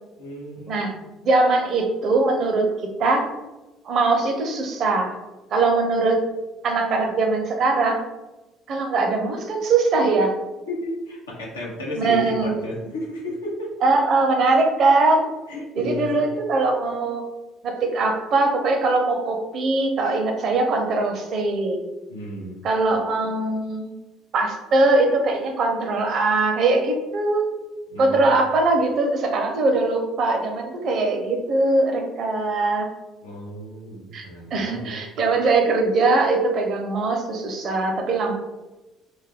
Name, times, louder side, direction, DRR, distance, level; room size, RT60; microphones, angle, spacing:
voice 1, 0.2-0.9 10.7-13.7 15.5-16.2 22.1-22.6 27.9-28.4 33.2-35.0, left 1 dB, 90° left, -4 dB, 0.7 m, -33 dB
voice 2, 1.2-3.3 3.8-5.1 5.5-6.2 6.6-8.0 8.7-10.3 11.9-12.6 13.8-15.3 15.7-17.2 17.6-21.8 22.6-23.9 24.3-27.4 28.0-32.9 34.1-34.2 34.5-38.3, right 3 dB, 55° right, 3 dB, 0.5 m, -21 dB
2.2 x 2.2 x 3.4 m, 1.1 s
hypercardioid pair, 60°, 0 cm